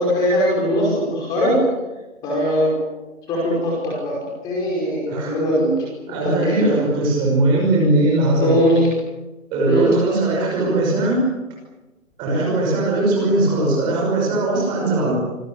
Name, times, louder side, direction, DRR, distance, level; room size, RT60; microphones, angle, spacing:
voice 1, 0.0-1.6 2.2-2.7 3.3-5.8 6.2-6.8 8.4-8.9 9.7-9.9, equal, 10° left, -3 dB, 5.3 m, -20 dB
voice 2, 6.1-8.6 9.5-11.3 12.2-15.1, right 2 dB, 10° right, -2 dB, 5.7 m, -19 dB
26.5 x 20.5 x 8.5 m, 1.1 s
hypercardioid pair, 170°, 40 cm